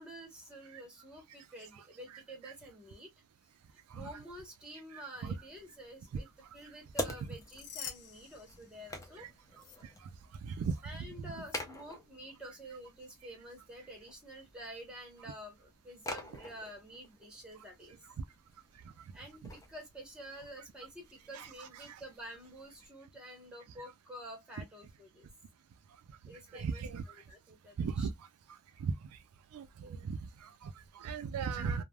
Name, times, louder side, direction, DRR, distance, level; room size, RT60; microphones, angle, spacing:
voice 1, 0.0-3.1 3.7-6.3 6.5-9.3 10.8-18.0 19.1-25.3 26.2-28.1, right 1 dB, 5° right, 0.9 m, -49 dB
voice 2, 4.9-5.3 9.2-9.3 9.8-10.1 10.4-11.1 21.3-22.0 26.5-27.0 27.8-28.1 28.8-28.9 29.5-31.8, right 5 dB, 70° right, 0.3 m, -38 dB
sound 1, 5.3-22.9, left 1 dB, 15° left, 0.5 m, -48 dB
sound 2, 7.2-9.2 9.5-9.8 11.4-11.6, left 9 dB, 70° left, 0.5 m, -48 dB
3.2 x 2.0 x 2.2 m
head